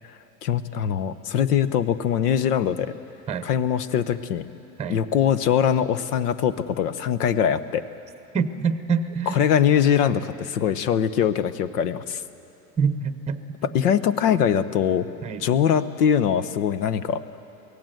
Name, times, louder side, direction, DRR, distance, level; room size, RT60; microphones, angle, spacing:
voice 1, 0.4-2.9 3.4-4.5 4.9-7.8 9.3-12.2 13.7-15.1 15.4-17.2, left 8 dB, 80° left, 14 dB, 1.1 m, -22 dB
voice 2, 8.3-9.4 12.8-13.4 15.2-15.5, right 5 dB, 15° right, 11 dB, 0.8 m, -25 dB
24.0 x 17.0 x 7.9 m, 2.8 s
hypercardioid pair, 105°, 46 cm